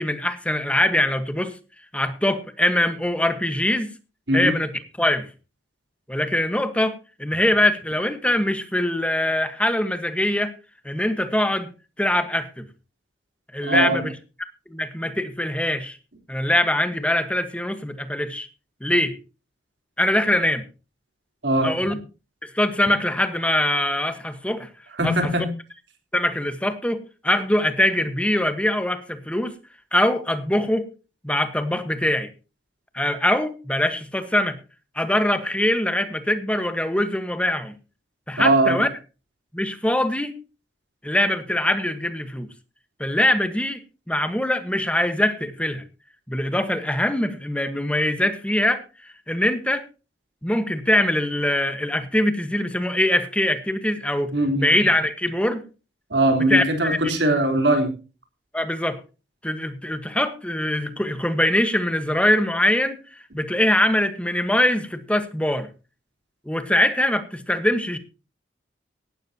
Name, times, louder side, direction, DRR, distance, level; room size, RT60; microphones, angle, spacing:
voice 1, 0.0-1.6 1.9-3.9 4.3-4.7 5.0-5.3 6.1-10.5 10.8-11.7 12.0-12.7 13.5-14.1 14.7-16.0 16.3-18.5 18.8-19.2 20.0-20.6 21.6-22.0 22.4-24.7 25.0-25.3 26.1-29.5 29.9-30.9 31.2-32.3 32.9-34.6 34.9-37.7 38.3-38.9 39.5-40.3 41.0-42.5 43.0-43.8 44.1-45.8 46.3-48.8 49.3-49.9 50.4-55.6 56.5-57.2 58.5-59.0 59.4-63.0 63.3-65.7 66.5-68.0, left 1 dB, 5° left, 10 dB, 1.4 m, -23 dB
voice 2, 13.6-14.0 21.4-21.9 25.0-25.5 38.4-38.8 54.3-54.7 56.1-58.0, right 1 dB, 70° right, 4 dB, 3.9 m, -21 dB
17.5 x 12.5 x 2.9 m, 0.32 s
head